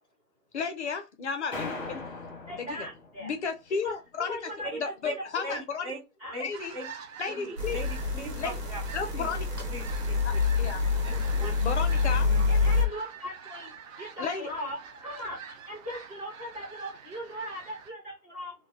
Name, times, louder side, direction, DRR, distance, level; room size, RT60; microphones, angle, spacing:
voice 1, 0.5-2.0 2.5-2.9 3.2-5.9 6.4-6.8 7.2-7.8 8.4-8.6 8.9-9.5 10.2-10.8 11.6-12.3 14.2-14.5, left 5 dB, 50° left, 0.4 m, -33 dB
sound 1, 1.5-3.5, left 3 dB, 25° left, 0.8 m, -39 dB
voice 2, 2.5-3.3 3.8-3.9 4.3-5.6 6.2-6.4 12.5-13.7 14.0-18.5, equal, 15° right, 0.6 m, -39 dB
voice 3, 4.7-5.1 5.4-6.0 6.3-6.8 7.3-8.4 8.7-8.8 9.2-9.3 9.7-10.2 11.0-11.5, right 1 dB, 30° right, 1.0 m, -39 dB
sound 2, 6.5-17.9, right 6 dB, 55° right, 0.6 m, -46 dB
sound 3, 7.6-12.9, left 4 dB, 90° right, 1.0 m, -27 dB
2.1 x 2.1 x 3.6 m
figure-of-eight pair, 120°, 47 cm